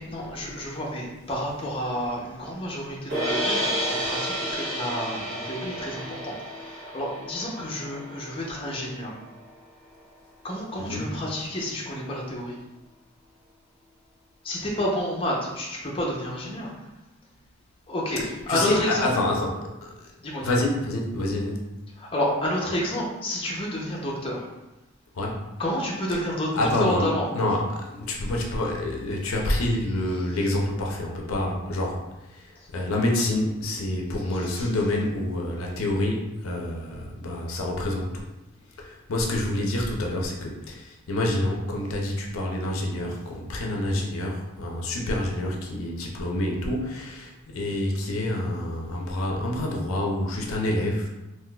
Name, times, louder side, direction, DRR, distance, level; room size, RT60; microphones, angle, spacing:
voice 1, 0.0-9.1 10.4-12.6 14.4-16.7 17.9-19.1 20.2-20.6 22.0-24.4 25.6-27.3 34.2-34.7, equal, 25° left, -3 dB, 0.6 m, -30 dB
sound 1, 3.1-9.3, equal, 50° right, 1.2 m, -31 dB
voice 2, 10.8-11.2 18.2-20.1 20.4-21.7 25.1-25.4 26.1-26.2 26.5-38.3 38.8-51.1, left 1 dB, 75° left, 0 dB, 0.5 m, -27 dB
3.7 x 2.5 x 2.2 m, 0.99 s
head